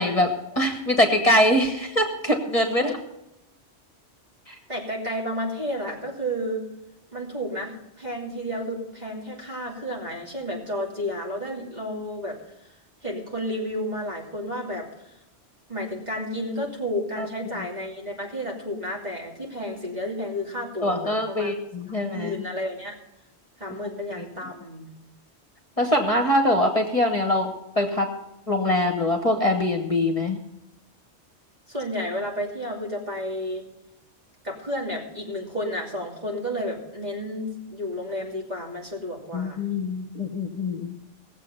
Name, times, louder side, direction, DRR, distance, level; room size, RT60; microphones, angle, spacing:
voice 1, 0.0-2.9 4.5-4.6 17.2-17.3 20.8-22.4 24.2-24.3 25.8-28.1 28.5-30.4 39.3-41.0, left 1 dB, 35° left, 4 dB, 1.2 m, -23 dB
voice 2, 4.7-6.7 7.1-12.7 13.0-15.1 15.7-21.5 21.9-22.9 23.6-25.0 31.7-33.6 34.4-39.6, equal, 40° right, -2 dB, 3.0 m, -31 dB
18.0 x 7.5 x 5.4 m, 0.90 s
omnidirectional pair, 1.1 m